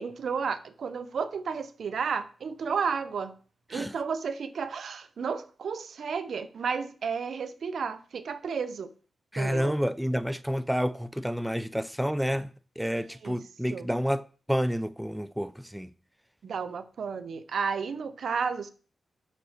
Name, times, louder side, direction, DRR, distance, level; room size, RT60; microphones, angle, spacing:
voice 1, 0.0-3.3 3.7-8.9 9.4-9.8 13.2-13.4 13.7-13.9 16.4-18.7, right 6 dB, 70° right, 0.9 m, -32 dB
voice 2, 9.3-12.5 12.8-14.2 14.5-15.9, equal, 5° right, 0.6 m, -29 dB
7.6 x 6.3 x 6.5 m
cardioid pair, 60°, 0 cm